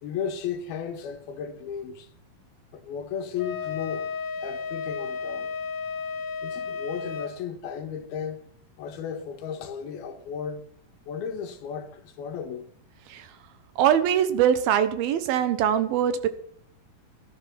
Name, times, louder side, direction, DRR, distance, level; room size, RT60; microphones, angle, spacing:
voice 1, 0.0-2.1 2.7-4.1 4.4-5.5 6.4-8.5 8.8-10.7 11.1-12.7, left 7 dB, 90° left, 3.5 m, -34 dB
Wind instrument woodwind instrument, 3.4-7.3, left 6 dB, 40° left, 1.2 m, -33 dB
voice 2, 13.8-16.3, right 9 dB, 85° right, 3.0 m, -22 dB
15.0 x 11.5 x 5.8 m
omnidirectional pair, 4.2 m